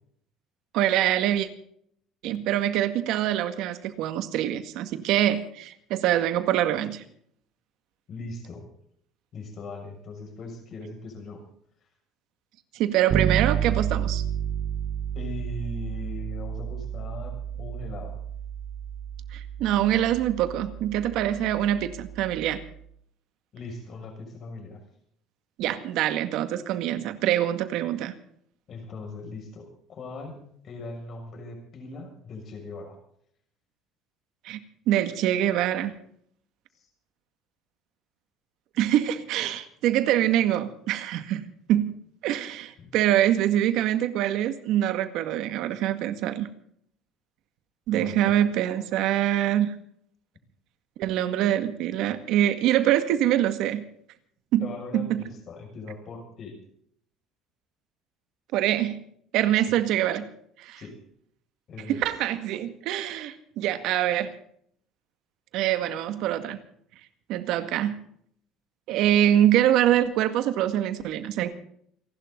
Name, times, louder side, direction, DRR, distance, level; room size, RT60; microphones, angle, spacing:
voice 1, 0.7-1.5 2.2-7.0 12.7-14.2 19.3-22.6 25.6-28.1 34.4-34.6 34.9-35.9 38.8-41.4 41.7-41.9 42.2-46.5 47.9-49.7 51.0-53.8 54.5-54.7 54.9-55.2 58.5-59.0 59.3-60.3 60.6-60.8 61.9-64.3 65.5-66.6 67.3-68.0 68.9-71.5, right 12 dB, 65° right, 10 dB, 1.9 m, -24 dB
voice 2, 8.1-8.7 9.3-11.4 15.1-18.2 23.5-24.8 28.7-33.0 36.7-36.9 42.8-42.9 47.9-48.4 54.6-56.6 59.5-59.8 60.7-61.0 61.7-62.1, left 3 dB, 45° left, 4 dB, 6.4 m, -40 dB
Bass guitar, 13.1-22.8, right 9 dB, 40° right, 1.0 m, -31 dB
28.5 x 12.0 x 3.9 m, 0.66 s
cardioid pair, 130°, 0 cm